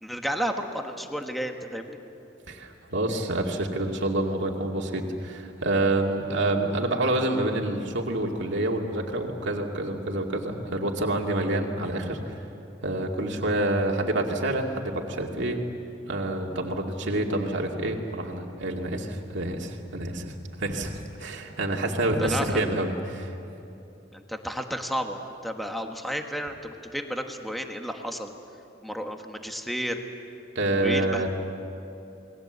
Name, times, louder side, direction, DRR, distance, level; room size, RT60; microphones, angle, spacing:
voice 1, 0.0-2.0 22.2-22.6 24.1-28.3 28.8-30.0 30.8-31.3, equal, ahead, 4 dB, 1.4 m, -32 dB
voice 2, 2.5-12.4 12.8-15.6 16.1-23.3 30.6-31.3, right 1 dB, 60° right, 0 dB, 2.3 m, -27 dB
28.5 x 20.5 x 8.0 m, 2.8 s
head